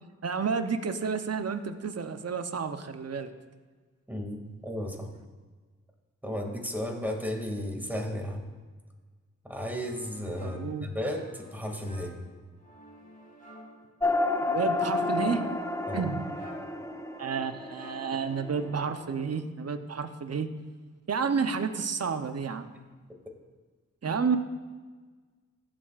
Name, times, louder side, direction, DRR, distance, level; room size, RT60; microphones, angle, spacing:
voice 1, 0.2-3.3 10.4-10.9 14.4-15.4 15.9-16.2 17.2-20.5 21.1-22.7 24.0-24.4, right 5 dB, 55° right, 9 dB, 0.8 m, -30 dB
voice 2, 4.1-5.1 6.2-8.5 9.4-12.2 15.9-16.1 22.7-22.8 24.1-24.2, left 1 dB, 5° right, 1 dB, 2.3 m, -34 dB
sound 1, 9.6-19.1, left 1 dB, 25° left, 2.5 m, -53 dB
sound 2, 14.0-18.8, left 2 dB, 10° left, 0.6 m, -30 dB
15.5 x 7.4 x 2.5 m, 1.4 s
cardioid pair, 45°, 31 cm